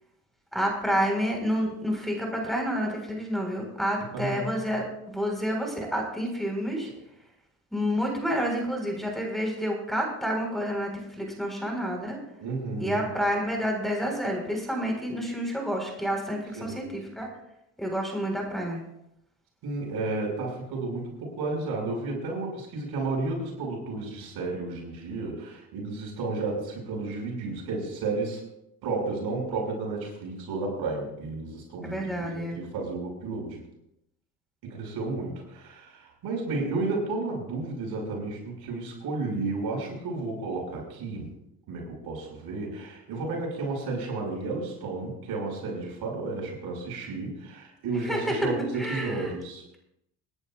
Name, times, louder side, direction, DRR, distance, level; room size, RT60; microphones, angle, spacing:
voice 1, 0.5-6.9 7.7-10.9 11.2-12.2 12.8-17.3 17.8-18.8 31.8-32.6 48.0-49.3, equal, ahead, 0 dB, 4.1 m, -29 dB
voice 2, 4.1-4.5 12.4-13.0 16.5-16.8 19.6-28.4 28.8-33.6 34.6-41.3 41.7-49.6, right 3 dB, 75° right, -1 dB, 5.6 m, -32 dB
25.5 x 11.0 x 2.4 m, 0.82 s
supercardioid pair, 85°, 39 cm